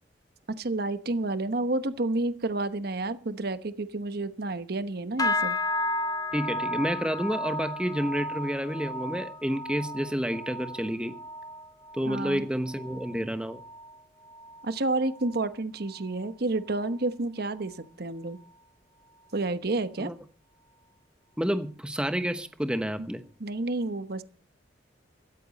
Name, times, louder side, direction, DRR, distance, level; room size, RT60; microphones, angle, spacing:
voice 1, 0.6-5.6 12.1-12.5 14.6-18.4 19.3-20.1 23.4-24.2, right 2 dB, 60° right, 1.0 m, -30 dB
sound 1, 5.2-14.7 15.0-15.5 15.9-16.2 16.8-16.9, left 2 dB, 20° left, 1.1 m, -34 dB
voice 2, 6.3-11.2 11.9-13.6 20.0-20.1 21.4-23.2, equal, 5° right, 1.1 m, -29 dB
16.5 x 14.0 x 4.2 m
head